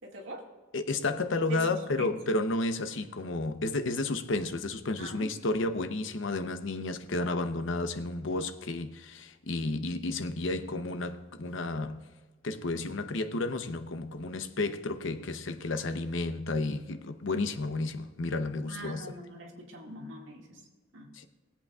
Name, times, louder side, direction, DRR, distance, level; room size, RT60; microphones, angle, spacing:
voice 1, 0.0-0.5 1.5-2.2 5.0-5.3 18.7-20.6 20.9-21.1, right 1 dB, 75° right, 2.0 m, -42 dB
voice 2, 0.7-12.1 12.4-19.0 21.1-21.3, left 2 dB, 70° left, 0.8 m, -32 dB
20.5 x 8.3 x 2.4 m
head